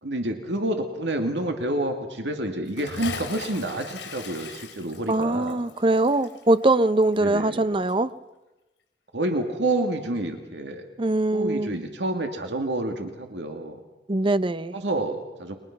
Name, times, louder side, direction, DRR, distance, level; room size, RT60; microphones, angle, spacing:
voice 1, 0.0-5.6 7.2-7.6 9.1-10.8 11.3-13.8 14.7-15.6, right 1 dB, 80° right, 4 dB, 2.3 m, -28 dB
Bathtub (filling or washing) / Splash splatter, 2.6-7.6 7.9-8.0, left 4 dB, 85° left, 4.2 m, -39 dB
voice 2, 5.1-8.1 11.0-11.8 14.1-14.7, right 2 dB, 30° right, 14 dB, 0.8 m, -22 dB
30.0 x 23.0 x 6.0 m, 1.0 s
head